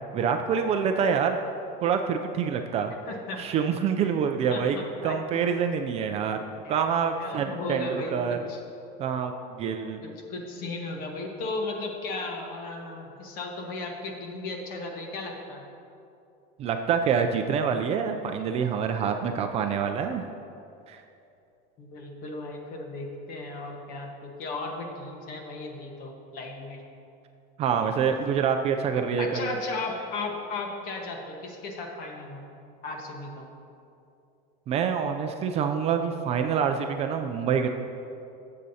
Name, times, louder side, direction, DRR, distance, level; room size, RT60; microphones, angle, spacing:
voice 1, 0.1-1.4 1.8-2.9 3.4-4.8 5.0-6.4 6.7-8.4 9.0-10.0 16.6-20.2 20.9-21.0 27.6-29.5 34.7-37.7, right 7 dB, 30° right, 5 dB, 0.4 m, -26 dB
voice 2, 3.1-3.4 4.0-4.1 4.5-5.5 6.6-6.8 7.2-8.6 10.0-15.6 21.8-26.8 29.2-32.4 32.8-33.5, left 2 dB, 45° left, 2 dB, 1.3 m, -35 dB
13.0 x 7.5 x 2.8 m, 2.7 s
cardioid pair, 160°, 20 cm